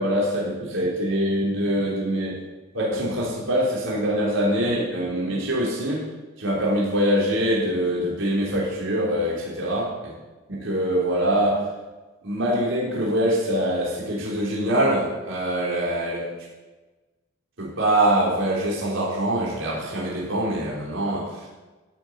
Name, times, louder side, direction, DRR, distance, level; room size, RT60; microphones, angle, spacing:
voice 1, 0.0-2.4 2.7-6.0 6.4-9.9 10.5-11.6 12.2-16.3 17.6-21.6, right 1 dB, 60° right, -5 dB, 4.3 m, -24 dB
15.5 x 7.6 x 8.4 m, 1.2 s
head